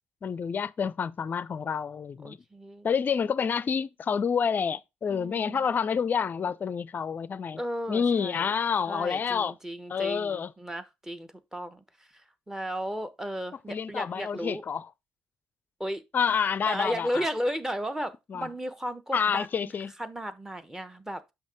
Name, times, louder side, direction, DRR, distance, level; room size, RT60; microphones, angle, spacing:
voice 1, 0.2-2.4 2.8-7.6 7.9-9.5 9.9-10.5 13.7-14.9 16.1-17.3 18.3-18.5 19.1-19.9, left 6 dB, 40° left, 0.4 m, -28 dB
voice 2, 2.2-2.9 5.1-5.6 7.6-8.5 8.9-11.8 12.5-14.6 15.8-16.0 16.7-19.5 20.0-21.3, equal, 10° right, 1.0 m, -34 dB
6.3 x 5.7 x 3.5 m
hypercardioid pair, 50°, 5 cm